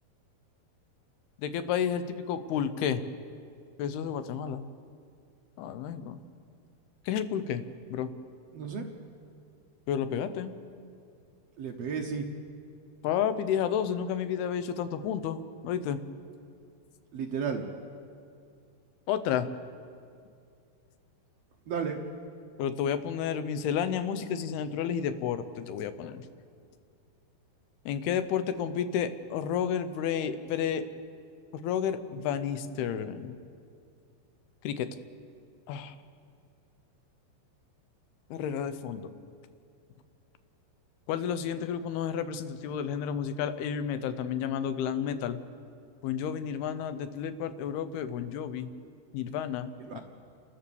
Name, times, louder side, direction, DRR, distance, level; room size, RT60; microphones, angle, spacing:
voice 1, 1.4-3.0 3.8-4.7 5.6-6.2 7.1-7.6 7.9-8.1 9.9-10.5 13.0-16.0 19.1-19.5 22.6-26.3 27.9-30.9 31.6-33.4 34.6-34.9 35.7-36.0 38.3-39.1 41.1-45.4 46.0-48.7 49.1-50.0, left 8 dB, 80° left, 11 dB, 2.8 m, -31 dB
voice 2, 8.5-8.8 11.6-12.2 17.1-17.7 21.7-22.0 49.9-50.0, right 6 dB, 85° right, 2 dB, 1.4 m, -33 dB
29.5 x 13.0 x 7.1 m, 2.4 s
omnidirectional pair, 4.6 m